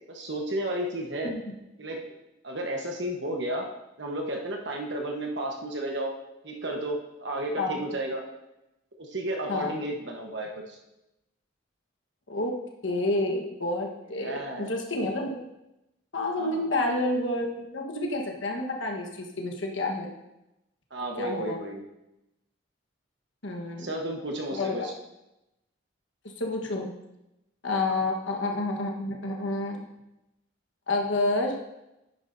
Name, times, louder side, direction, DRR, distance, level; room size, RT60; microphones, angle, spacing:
voice 1, 0.1-1.3 1.8-2.1 2.4-3.7 4.0-6.1 6.4-8.2 9.0-10.7 14.2-14.7 16.4-16.7 20.9-21.8 23.8-24.9 27.8-28.0, right 1 dB, 60° right, 1 dB, 1.2 m, -32 dB
voice 2, 12.8-15.4 16.1-20.1 21.2-21.6 23.4-23.9 24.5-24.9 26.2-26.9 27.6-29.9 30.9-31.6, left 2 dB, 70° left, 2 dB, 1.3 m, -29 dB
10.5 x 9.6 x 2.7 m, 0.92 s
head